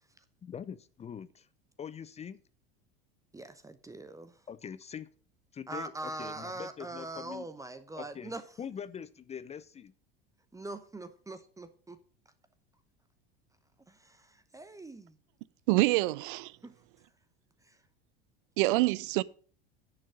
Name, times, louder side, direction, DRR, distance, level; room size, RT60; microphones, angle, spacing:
voice 1, 0.4-1.5 1.8-2.4 4.5-5.1 5.5-7.5 7.9-8.3 8.6-9.9, left 7 dB, 20° left, 0.6 m, -43 dB
voice 2, 3.3-4.4 5.7-8.4 10.5-12.0 13.9-15.2 16.6-16.8 17.6-17.8, right 2 dB, 10° right, 0.8 m, -42 dB
voice 3, 15.7-16.5 18.6-19.2, right 20 dB, 60° right, 0.5 m, -26 dB
10.0 x 6.3 x 6.2 m
figure-of-eight pair, 75°, 30 cm